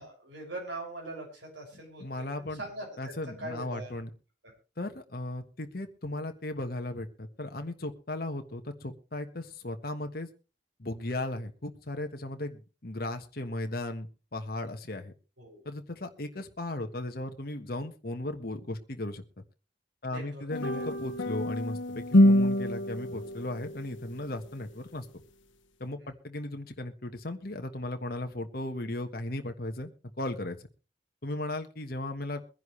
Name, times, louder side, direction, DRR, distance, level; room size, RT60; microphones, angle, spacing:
voice 1, 0.0-3.9 4.4-4.5 15.4-15.7 20.1-20.4 20.7-20.9 26.0-26.1, right 2 dB, 80° right, 0 dB, 6.4 m, -42 dB
voice 2, 2.0-2.6 3.0-4.1 4.8-10.3 10.8-15.1 15.6-19.2 20.0-25.1 25.8-29.9 30.2-30.7 31.2-32.4, left 1 dB, 50° left, 6 dB, 1.4 m, -36 dB
sound 1, 20.5-23.9, left 1 dB, 85° left, 1.1 m, -25 dB
22.5 x 10.5 x 3.2 m, 0.34 s
head